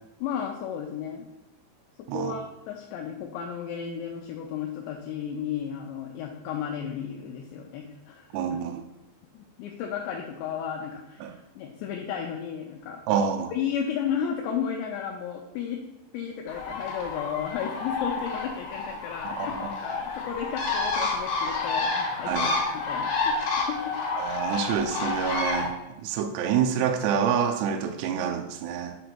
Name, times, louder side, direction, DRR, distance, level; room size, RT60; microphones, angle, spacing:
voice 1, 0.2-1.3 2.0-8.6 9.3-13.0 13.5-15.8 16.1-24.0, left 8 dB, 80° left, 2 dB, 2.6 m, -34 dB
voice 2, 8.3-8.8 11.2-11.3 13.1-13.5 19.6-19.7 22.3-22.5 24.2-29.0, right 7 dB, 80° right, 5 dB, 2.5 m, -27 dB
Bird, 16.5-25.7, left 4 dB, 65° left, 3.0 m, -29 dB
7.6 x 2.7 x 5.9 m, 0.96 s
omnidirectional pair, 5.4 m